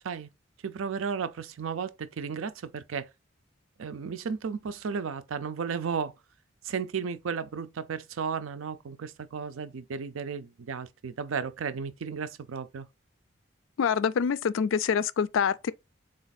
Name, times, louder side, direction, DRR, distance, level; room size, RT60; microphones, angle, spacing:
voice 1, 0.6-3.1 3.8-6.1 6.6-12.9, right 6 dB, 90° right, 0.5 m, -34 dB
voice 2, 13.8-15.7, left 6 dB, 75° left, 0.3 m, -26 dB
4.0 x 2.5 x 4.0 m
head